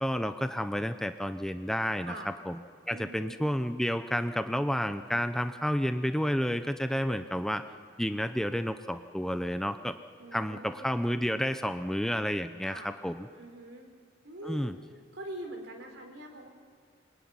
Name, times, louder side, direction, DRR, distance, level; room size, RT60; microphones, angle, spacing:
voice 1, 0.0-2.1 2.5-2.6 2.9-7.6 8.0-9.9 10.3-13.3 14.4-14.7, equal, 5° left, 9 dB, 0.7 m, -30 dB
voice 2, 2.9-3.4 10.2-11.3 12.6-12.9 13.3-13.9 14.2-14.7 15.1-16.5, right 1 dB, 70° right, 4 dB, 4.4 m, -44 dB
26.0 x 22.5 x 9.7 m, 2.2 s
head